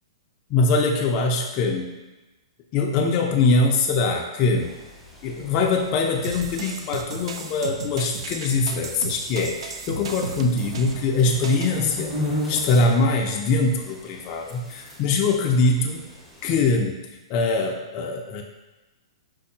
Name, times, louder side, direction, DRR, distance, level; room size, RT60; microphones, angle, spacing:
voice 1, 0.5-1.9 2.7-4.7 5.2-12.1 12.5-16.0 16.4-17.0 17.3-18.4, left 3 dB, 35° left, 1 dB, 0.4 m, -22 dB
sound 1, 4.6-16.5, left 1 dB, 5° right, 0.6 m, -37 dB
sound 2, 6.2-11.8, right 5 dB, 75° right, 0.3 m, -34 dB
5.2 x 2.0 x 2.7 m, 1.1 s
hypercardioid pair, 140°, 3 cm